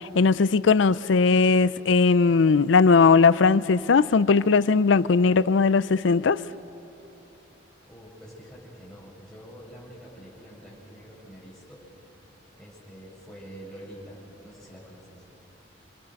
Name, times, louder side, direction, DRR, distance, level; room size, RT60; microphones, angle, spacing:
voice 1, 0.0-6.4, left 4 dB, 75° left, 0.5 m, -19 dB
voice 2, 7.8-11.8 12.6-15.1, equal, 5° left, 7.3 m, -46 dB
28.5 x 25.5 x 6.5 m
head